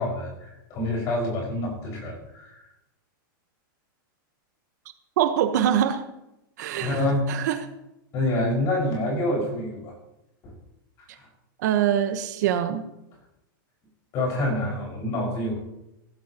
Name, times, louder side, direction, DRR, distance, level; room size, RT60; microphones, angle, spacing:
voice 1, 0.0-2.6 6.8-7.2 8.1-9.9 10.4-10.5 11.1-11.2 14.1-15.6, left 1 dB, 30° left, -1 dB, 5.6 m, -27 dB
voice 2, 5.2-6.0 6.6-7.0 7.3-7.6 11.6-12.8, right 10 dB, 55° right, 7 dB, 1.2 m, -23 dB
16.5 x 16.0 x 3.0 m, 0.90 s
supercardioid pair, 170°, 11 cm